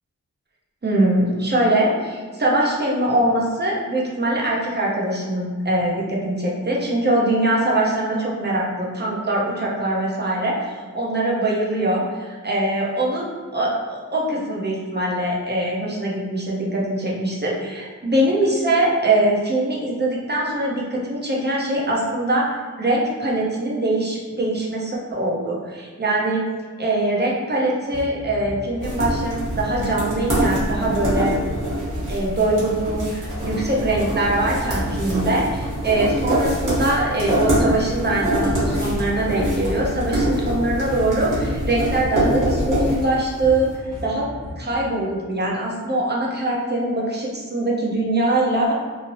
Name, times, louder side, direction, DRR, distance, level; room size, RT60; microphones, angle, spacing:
voice 1, 0.8-26.4 26.8-31.4 32.1-43.7 44.0-44.3 44.6-48.7, right 1 dB, 35° right, -4 dB, 0.7 m, -22 dB
sound 1, 27.8-44.8, left 1 dB, 30° left, 1.3 m, -36 dB
sound 2, 28.8-43.6, right 1 dB, 75° right, 1.2 m, -24 dB
3.0 x 2.7 x 2.6 m, 1.5 s
wide cardioid pair, 75°, 31 cm